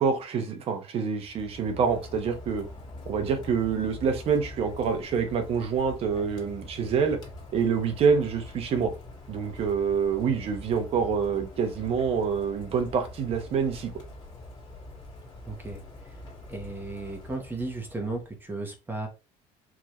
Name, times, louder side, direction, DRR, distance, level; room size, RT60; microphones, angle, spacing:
voice 1, 0.0-2.7 3.1-7.2 7.5-8.9 9.3-13.9, right 6 dB, 45° right, 0.9 m, -26 dB
Rain, 1.1-18.4, left 2 dB, 35° left, 1.7 m, -44 dB
voice 2, 15.5-15.8 16.5-19.1, right 2 dB, 15° right, 0.9 m, -35 dB
4.8 x 2.9 x 2.9 m
cardioid pair, 140°, 14 cm